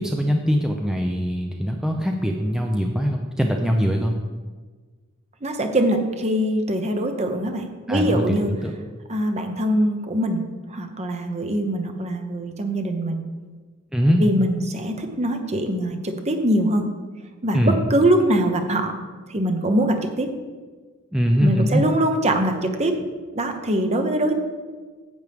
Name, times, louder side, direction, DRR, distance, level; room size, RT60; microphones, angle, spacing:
voice 1, 0.0-4.1 7.9-8.7 13.9-14.2 17.5-17.8 21.1-21.8, equal, 5° right, 1 dB, 0.5 m, -22 dB
voice 2, 5.4-8.5 9.1-10.4 10.7-13.2 14.2-16.8 17.4-18.9 19.3-20.3 21.4-22.9 23.3-24.4, right 1 dB, 30° right, 5 dB, 0.9 m, -22 dB
10.5 x 8.1 x 3.5 m, 1.4 s
head